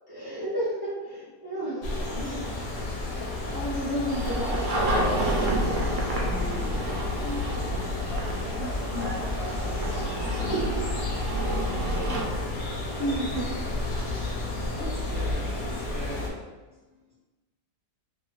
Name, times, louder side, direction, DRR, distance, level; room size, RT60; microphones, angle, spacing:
voice 1, 0.1-2.1 2.9-6.1 7.2-7.4 8.6-9.1 10.3-10.8 12.9-13.5, right 1 dB, 25° right, -10 dB, 0.5 m, -33 dB
sound 1, 1.8-16.3, left 2 dB, 65° left, 0.9 m, -32 dB
voice 2, 2.1-2.5 6.2-7.0 9.8-10.7 12.9-13.3 14.4-16.4, left 2 dB, 80° left, -8 dB, 0.5 m, -41 dB
sound 2, 4.1-12.2, equal, 70° right, 0.7 m, -29 dB
voice 3, 8.0-9.9 11.8-12.3, left 1 dB, 10° left, -10 dB, 0.9 m, -40 dB
2.8 x 2.3 x 2.9 m, 1.2 s
omnidirectional pair, 1.8 m